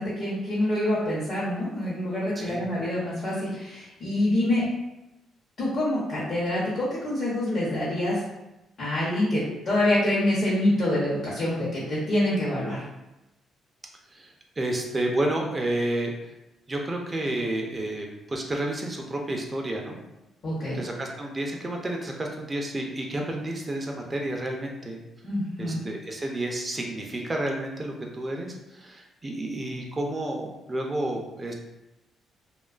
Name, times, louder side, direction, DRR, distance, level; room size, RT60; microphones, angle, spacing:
voice 1, 0.0-4.6 5.6-8.2 8.8-12.8 20.4-20.8 25.2-25.8, left 1 dB, 55° left, -8 dB, 0.8 m, -26 dB
voice 2, 2.4-2.7 14.1-16.3 16.7-20.0 20.7-25.0 25.6-31.5, right 1 dB, 25° right, 1 dB, 0.4 m, -30 dB
2.4 x 2.2 x 2.3 m, 0.95 s
cardioid pair, 90°, 0 cm